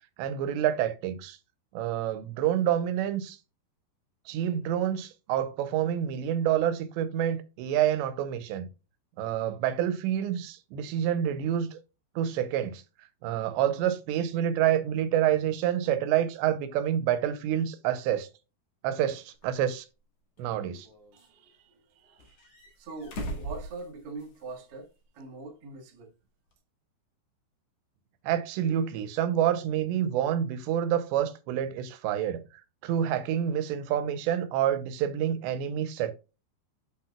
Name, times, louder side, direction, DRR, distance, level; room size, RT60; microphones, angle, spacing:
voice 1, 0.2-1.4 1.7-3.4 4.3-8.7 9.2-11.8 12.2-12.8 13.2-18.3 18.8-19.9 20.4-20.9 28.2-32.4 32.8-36.1, right 10 dB, 90° right, 3.0 m, -28 dB
sound 1, 19.4-19.5 20.4-21.3 22.2-24.5 24.8-24.9 26.5-26.6, right 1 dB, 55° left, 1.8 m, -40 dB
voice 2, 21.1-26.1, right 3 dB, 55° right, 1.6 m, -44 dB
8.5 x 5.8 x 2.3 m
omnidirectional pair, 5.0 m